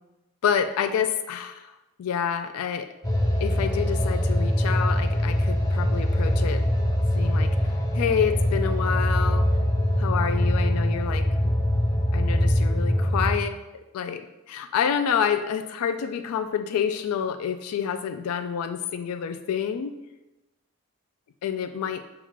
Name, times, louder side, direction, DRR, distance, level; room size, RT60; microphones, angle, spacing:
voice 1, 0.4-1.7 2.0-2.9 3.4-6.6 7.1-7.5 7.9-9.5 10.0-11.5 12.1-13.6 13.9-19.9 21.4-22.0, left 7 dB, 90° left, 9 dB, 0.3 m, -28 dB
sound 1, 3.0-13.4, left 1 dB, 15° left, 0.5 m, -23 dB
7.0 x 2.4 x 2.9 m, 1.0 s
head